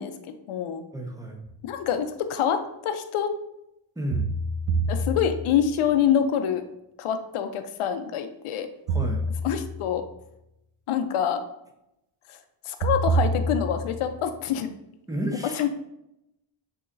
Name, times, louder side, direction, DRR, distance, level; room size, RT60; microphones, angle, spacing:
voice 1, 0.0-0.8 1.6-3.3 4.9-6.6 7.0-8.7 9.4-10.0 10.9-11.4 12.3-12.4 12.6-14.7 15.5-15.7, left 8 dB, 85° left, 8 dB, 0.6 m, -26 dB
voice 2, 0.9-1.4 4.0-4.3 8.9-9.2 15.1-15.7, equal, 5° right, 1 dB, 0.6 m, -31 dB
sound 1, 1.5-1.6 4.1-5.7 8.9-10.0 12.8-14.1, right 2 dB, 85° right, 0.7 m, -27 dB
6.8 x 2.9 x 2.5 m, 0.85 s
cardioid pair, 115°, 50 cm